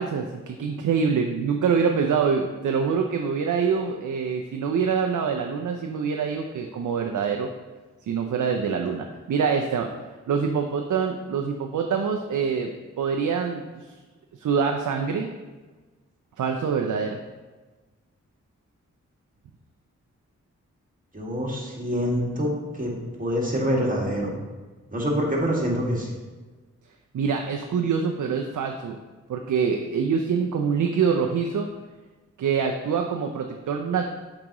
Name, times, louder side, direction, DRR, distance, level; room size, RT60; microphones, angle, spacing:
voice 1, 0.0-7.5 8.1-9.9 10.3-12.7 13.0-13.9 14.3-15.3 16.4-17.2 27.1-29.0 29.3-31.7 32.4-34.1, right 6 dB, 80° right, 3 dB, 0.5 m, -25 dB
voice 2, 21.1-22.9 23.2-24.3 24.9-26.1, equal, 25° right, -3 dB, 1.9 m, -25 dB
7.3 x 4.9 x 3.0 m, 1.3 s
cardioid pair, 50°, 30 cm